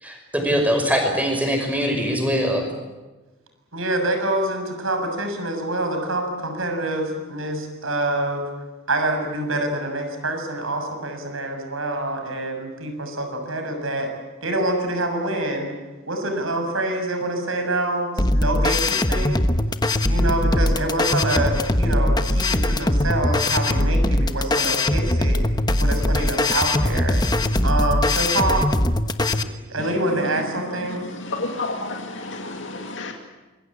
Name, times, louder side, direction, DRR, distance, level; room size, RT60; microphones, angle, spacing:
voice 1, 0.0-2.7, equal, 5° right, 3 dB, 5.9 m, -22 dB
voice 2, 3.7-8.5 8.9-14.1 14.4-15.7 16.1-19.4 20.1-25.4 25.8-27.2 27.6-28.7 29.3-31.1, right 1 dB, 85° right, 5 dB, 6.7 m, -26 dB
sound 1, 18.2-29.4, left 1 dB, 20° left, 1.1 m, -21 dB
voice 3, 30.9-33.1, left 2 dB, 65° left, 3 dB, 2.3 m, -31 dB
26.5 x 22.0 x 8.6 m, 1.2 s
head